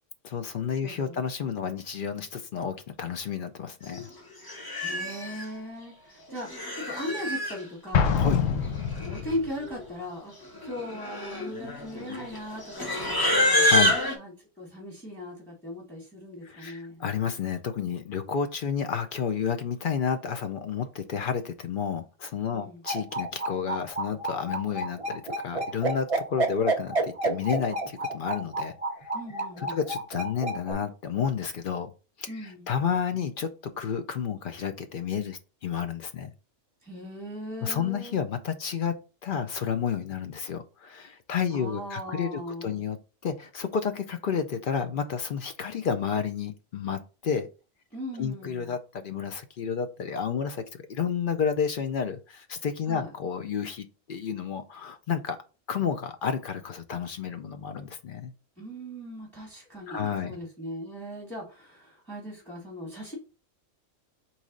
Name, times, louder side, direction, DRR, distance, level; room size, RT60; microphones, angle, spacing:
voice 1, 0.2-4.1 8.2-8.4 13.7-14.0 16.4-28.7 29.0-29.1 29.6-31.9 32.2-33.5 33.8-36.3 37.6-38.9 39.2-43.0 43.2-47.5 48.2-55.4 55.7-58.3 59.9-60.4, left 7 dB, 60° left, 0.6 m, -31 dB
voice 2, 0.8-1.2 4.8-8.2 8.9-13.7 14.1-17.0 22.5-22.8 29.1-29.8 32.3-32.7 36.8-38.2 41.5-42.8 47.9-48.7 52.9-53.1 58.6-63.2, left 1 dB, ahead, 1.2 m, -38 dB
Livestock farm animals working animals, 3.9-4.1 4.5-5.4 6.3-7.6 8.6-8.7 8.9-9.3 9.6-9.9 10.6-14.1, left 1 dB, 20° left, 0.7 m, -27 dB
Explosion, 7.9-9.5, left 6 dB, 85° left, 1.0 m, -25 dB
sound 1, 22.9-30.7, right 2 dB, 35° right, 0.6 m, -29 dB
4.1 x 3.1 x 3.7 m
omnidirectional pair, 1.3 m